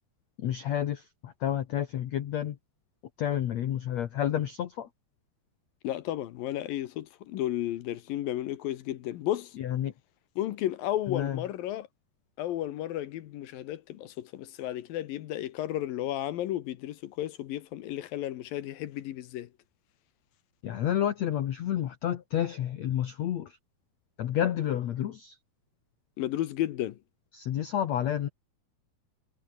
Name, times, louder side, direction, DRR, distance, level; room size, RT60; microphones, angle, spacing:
voice 1, 0.4-2.6 3.2-4.9 9.6-9.9 11.1-11.4 20.6-23.6 24.2-25.3 27.3-28.3, left 10 dB, 85° left, 1.5 m, -30 dB
voice 2, 5.8-9.6 10.4-11.9 12.4-19.5 26.2-27.0, left 13 dB, 70° left, 2.4 m, -33 dB
omnidirectional pair, 5.0 m